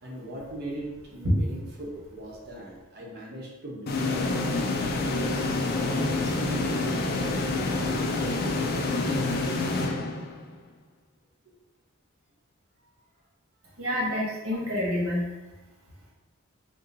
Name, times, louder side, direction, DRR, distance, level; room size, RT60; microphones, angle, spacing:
voice 1, 0.0-4.3 4.8-9.6 11.4-11.6 14.5-14.6, right 1 dB, 50° right, -3 dB, 0.8 m, -40 dB
sound 1, 3.9-10.6, left 2 dB, 45° left, 0.4 m, -27 dB
voice 2, 13.8-15.3, equal, 80° right, -6 dB, 1.3 m, -27 dB
2.7 x 2.6 x 3.8 m, 1.0 s
head